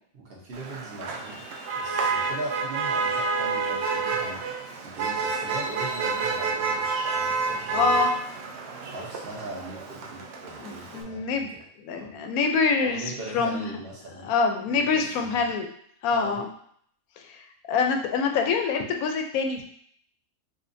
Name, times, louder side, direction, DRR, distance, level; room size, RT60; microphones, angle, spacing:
voice 1, 0.1-1.4 1.7-8.0 8.9-11.4 11.9-12.2 12.8-14.3 14.7-15.5 16.1-16.4, right 2 dB, 45° right, -3 dB, 1.0 m, -40 dB
Motor vehicle (road), 0.5-11.0, right 4 dB, 65° right, 0.7 m, -29 dB
voice 2, 7.7-8.1 10.6-11.5 11.8-13.8 14.2-15.7 16.0-16.5 17.7-19.7, left 5 dB, 80° left, 4 dB, 1.0 m, -25 dB
4.9 x 2.3 x 2.6 m, 0.65 s
omnidirectional pair, 1.5 m